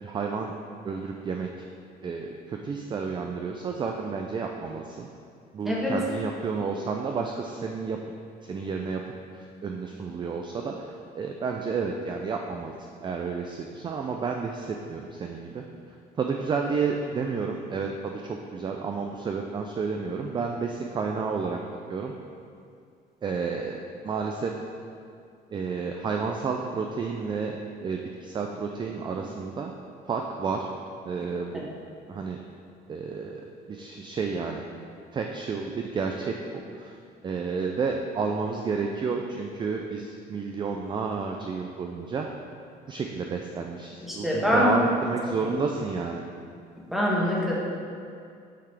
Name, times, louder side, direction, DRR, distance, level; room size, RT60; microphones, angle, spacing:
voice 1, 0.0-0.5 0.8-1.5 2.0-5.1 5.5-8.0 8.5-9.0 9.3-12.7 13.0-15.6 16.2-21.6 21.9-22.1 23.2-24.5 25.5-29.7 30.1-30.7 31.0-31.7 32.1-32.4 32.9-34.6 35.1-37.0 37.2-42.3 42.9-46.2, right 5 dB, 30° right, 2 dB, 0.4 m, -31 dB
voice 2, 44.0-44.8 45.4-45.5 46.9-47.6, left 1 dB, ahead, -5 dB, 1.3 m, -24 dB
8.4 x 3.7 x 3.3 m, 2.4 s
cardioid pair, 110°, 17 cm